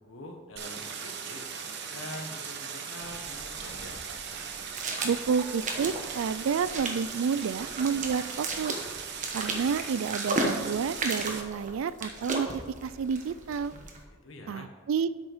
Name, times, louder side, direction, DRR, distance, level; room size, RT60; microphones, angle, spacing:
voice 1, 0.0-1.4 1.9-4.0 14.2-14.7, left 1 dB, 75° left, 2 dB, 1.4 m, -44 dB
Stream, 0.6-11.4, right 6 dB, 60° right, 0.9 m, -39 dB
sound 1, 3.0-14.0, right 2 dB, 40° right, 1.1 m, -36 dB
voice 2, 5.0-8.8 9.3-13.7 14.5-15.1, right 6 dB, 80° right, 16 dB, 0.4 m, -30 dB
8.2 x 6.3 x 5.0 m, 1.3 s
head